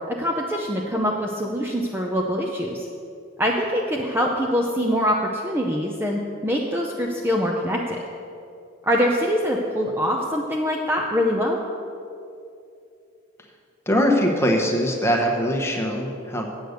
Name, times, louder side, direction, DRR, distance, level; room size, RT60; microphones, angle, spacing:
voice 1, 0.1-2.9 3.4-8.0 8.8-11.6, equal, 10° right, -1 dB, 0.5 m, -24 dB
voice 2, 13.9-16.5, equal, 10° left, 1 dB, 1.0 m, -22 dB
8.5 x 7.9 x 6.5 m, 2.6 s
head